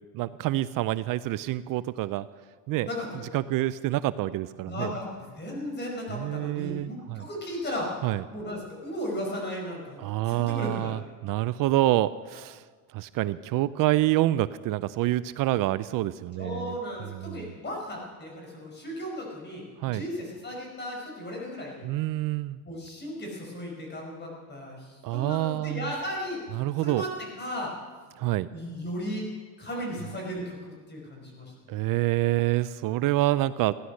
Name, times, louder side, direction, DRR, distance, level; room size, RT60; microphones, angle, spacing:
voice 1, 0.1-2.3 2.7-2.9 3.3-4.9 6.1-7.3 8.0-8.2 10.0-12.6 12.9-16.8 17.1-17.5 19.8-20.0 21.8-22.6 25.0-25.9 26.5-27.0 28.2-28.5 31.7-33.7, right 16 dB, 55° right, 16 dB, 0.5 m, -27 dB
voice 2, 2.8-3.2 4.7-7.9 8.3-10.0 10.3-10.9 16.4-21.9 22.6-26.4 26.8-27.7 28.5-29.3 29.6-31.9, equal, 25° left, -1 dB, 5.3 m, -36 dB
16.0 x 11.0 x 6.4 m, 1.5 s
cardioid pair, 125°, 40 cm